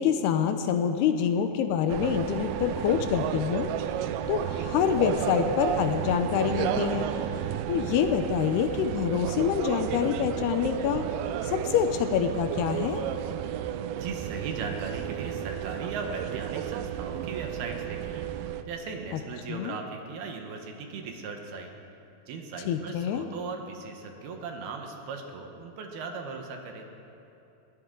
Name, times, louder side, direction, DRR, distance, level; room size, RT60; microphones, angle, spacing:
voice 1, 0.0-3.7 4.3-7.1 7.7-11.0 11.4-13.0 19.5-19.7 22.7-23.3, left 8 dB, 80° left, 8 dB, 2.4 m, -26 dB
sound 1, 1.9-18.6, right 10 dB, 90° right, 2.2 m, -32 dB
voice 2, 14.0-18.2 18.7-21.7 22.3-26.9, right 4 dB, 70° right, 3 dB, 2.8 m, -38 dB
21.5 x 17.0 x 3.8 m, 2.9 s
omnidirectional pair, 5.2 m